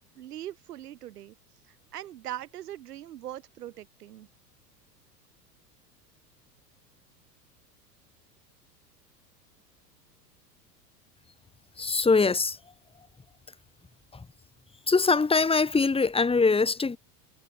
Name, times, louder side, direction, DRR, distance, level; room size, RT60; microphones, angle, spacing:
voice 1, 0.2-1.3 1.7-4.3, right 12 dB, 70° right, 4.1 m, -41 dB
voice 2, 11.8-12.6 14.1-14.3 14.9-17.0, left 4 dB, 10° left, 2.6 m, -23 dB
hypercardioid pair, 90°, 48 cm